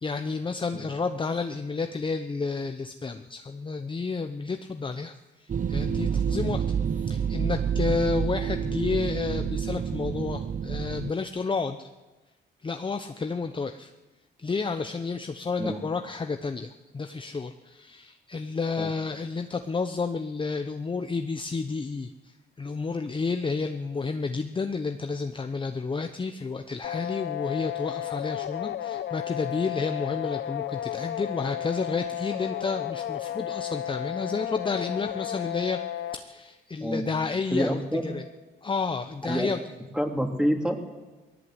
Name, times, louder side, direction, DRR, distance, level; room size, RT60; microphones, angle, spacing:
voice 1, 0.0-6.6 7.0-11.9 12.6-13.9 14.4-35.8 36.1-38.3 38.6-39.6, left 4 dB, 25° left, 7 dB, 0.9 m, -31 dB
sound 1, 5.5-11.1, right 7 dB, 40° right, 0.7 m, -28 dB
sound 2, 26.8-36.2, left 12 dB, 65° left, 1.0 m, -33 dB
voice 2, 37.5-38.1 39.2-39.5 39.9-40.8, equal, 5° right, 2 dB, 3.1 m, -27 dB
19.5 x 16.5 x 8.1 m, 1.2 s
cardioid pair, 90°, 20 cm